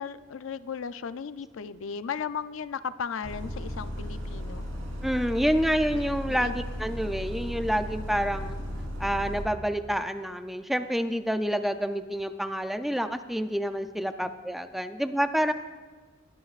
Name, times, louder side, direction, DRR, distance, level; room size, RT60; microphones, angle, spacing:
voice 1, 0.0-4.7 5.9-6.6, left 6 dB, 70° left, 13 dB, 0.4 m, -36 dB
Bus, 3.2-9.4, equal, 70° right, 3.0 m, -35 dB
voice 2, 5.0-8.6 9.0-15.5, equal, ahead, 8 dB, 0.4 m, -28 dB
20.5 x 12.5 x 2.4 m, 1.4 s
head